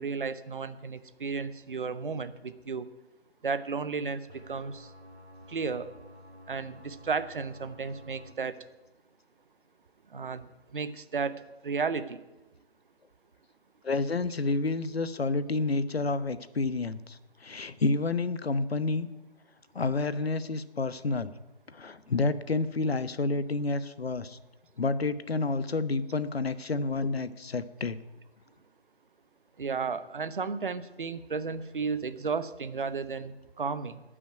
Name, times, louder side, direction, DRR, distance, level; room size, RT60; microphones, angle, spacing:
voice 1, 0.0-2.9 3.4-4.9 5.5-5.9 6.5-8.6 10.1-12.2 29.6-34.0, right 5 dB, 55° right, 13 dB, 0.9 m, -33 dB
sound 1, 4.3-8.3, left 1 dB, 90° right, 1.7 m, -51 dB
voice 2, 13.8-19.1 19.7-21.3 21.7-24.4 24.8-28.0, left 3 dB, 70° left, 14 dB, 1.0 m, -29 dB
14.0 x 6.2 x 9.1 m, 1.1 s
figure-of-eight pair, 150°, 32 cm